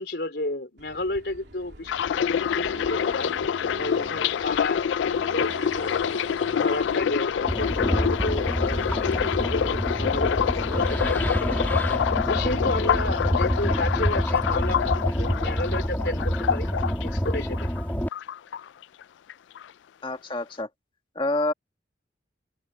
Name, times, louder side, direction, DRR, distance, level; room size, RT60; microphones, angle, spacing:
voice 1, 0.0-3.5 3.8-5.9 6.4-11.2 12.3-17.7, left 2 dB, 60° left, 3.8 m, -32 dB
Accelerating revving vroom, 0.8-9.5, right 1 dB, 65° right, 3.2 m, -43 dB
sound 1, 1.9-17.8 18.1-19.0 19.3-19.6, left 8 dB, 75° left, 0.3 m, -27 dB
sound 2, 7.5-18.1, equal, 10° left, 2.3 m, -27 dB
voice 2, 20.0-20.7 21.2-21.5, left 2 dB, 25° left, 1.9 m, -27 dB
open air
head